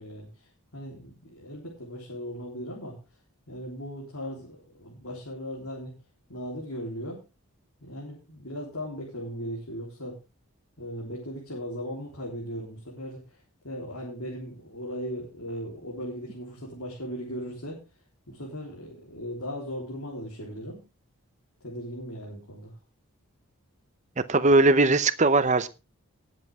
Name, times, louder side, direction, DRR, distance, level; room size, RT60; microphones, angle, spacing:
voice 1, 0.0-3.0 3.5-5.9 6.3-7.2 7.8-10.2 10.8-17.8 18.3-20.8 21.6-22.8, equal, 75° left, 3.7 m, -38 dB
voice 2, 24.3-25.7, right 2 dB, 30° right, 0.7 m, -20 dB
19.0 x 7.6 x 3.6 m
head